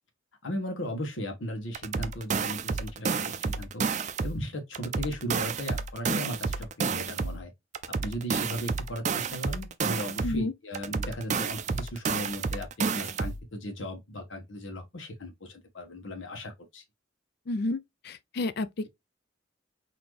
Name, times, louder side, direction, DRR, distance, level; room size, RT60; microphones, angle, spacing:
voice 1, 0.4-3.8 4.2-7.5 7.9-16.8, equal, 90° left, 1.3 m, -37 dB
sound 1, 1.7-4.4 4.7-7.4 7.7-10.4 10.7-13.4, right 5 dB, 40° right, 0.4 m, -30 dB
voice 2, 17.5-17.8 18.0-18.9, left 2 dB, 55° left, 0.4 m, -30 dB
4.1 x 2.8 x 3.2 m
head